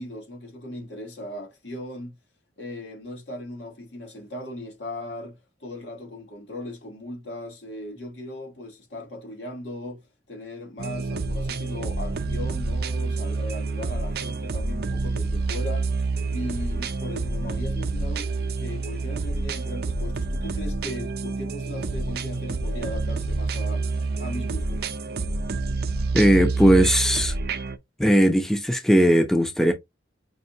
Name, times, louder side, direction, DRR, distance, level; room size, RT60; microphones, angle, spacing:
voice 1, 0.0-2.1 2.6-15.9 16.3-23.9 24.2-24.9, left 1 dB, 80° left, 2.2 m, -38 dB
sound 1, 10.8-27.8, right 3 dB, 60° right, 0.5 m, -28 dB
voice 2, 26.1-27.3 28.0-29.7, equal, 5° left, 0.5 m, -18 dB
5.3 x 2.7 x 2.7 m
head